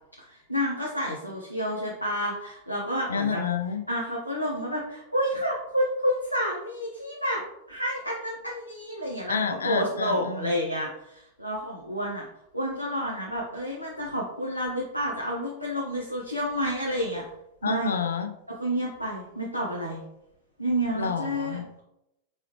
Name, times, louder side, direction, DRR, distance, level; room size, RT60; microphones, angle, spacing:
voice 1, 0.2-3.4 3.9-7.4 7.7-9.4 9.6-12.3 12.5-17.2 17.6-18.0 18.5-20.0 20.6-21.8, equal, 90° right, -4 dB, 0.7 m, -29 dB
voice 2, 3.1-3.8 9.3-10.5 17.6-18.3 20.9-21.7, left 6 dB, 70° left, 7 dB, 0.4 m, -29 dB
4.7 x 3.1 x 2.9 m, 0.84 s
figure-of-eight pair, 90°, 0 cm